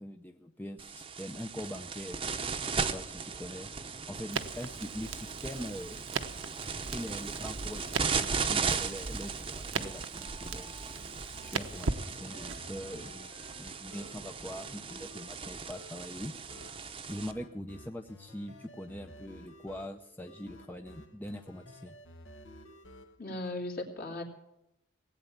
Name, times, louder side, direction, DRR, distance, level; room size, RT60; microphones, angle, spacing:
voice 1, 0.0-2.2 2.8-3.7 4.1-6.1 6.9-10.7 11.4-13.3 13.6-16.3 17.1-22.0, equal, 10° left, 4 dB, 0.7 m, -42 dB
sound 1, 0.8-17.3, right 5 dB, 25° right, 0.9 m, -37 dB
Crackle, 4.3-12.6, right 4 dB, 75° right, 0.9 m, -39 dB
sound 2, 9.8-14.2 14.5-15.4 15.7-16.0 16.5-23.5, left 1 dB, 70° left, 1.7 m, -53 dB
voice 2, 23.2-24.2, left 2 dB, 45° left, 2 dB, 2.8 m, -37 dB
18.5 x 8.9 x 7.3 m, 0.88 s
head